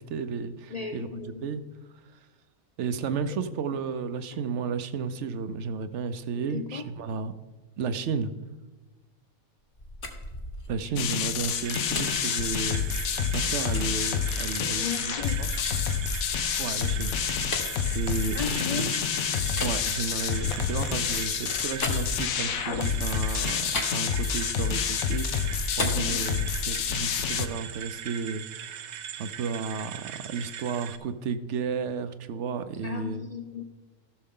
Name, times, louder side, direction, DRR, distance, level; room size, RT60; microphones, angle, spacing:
voice 1, 0.1-1.6 2.8-7.3 7.8-8.3 10.7-12.9 13.3-15.5 16.6-17.5 17.9-18.4 18.7-18.9 19.6-33.3, right 5 dB, 65° right, 11 dB, 0.9 m, -33 dB
voice 2, 0.7-1.4 3.3-3.4 6.3-6.9 10.8-10.9 14.8-15.4 18.3-18.9 25.9-26.2 32.8-33.6, left 6 dB, 75° left, 6 dB, 0.3 m, -35 dB
sound 1, 9.6-13.1 13.7-13.9 14.5-18.9 19.5-22.7 23.7-24.8 25.2-26.9, left 2 dB, 40° left, 1.3 m, -38 dB
sound 2, 11.0-27.5, left 7 dB, 90° left, 1.1 m, -28 dB
sound 3, 11.6-31.0, right 9 dB, 90° right, 1.1 m, -39 dB
14.5 x 6.5 x 3.7 m, 1.2 s
omnidirectional pair, 1.4 m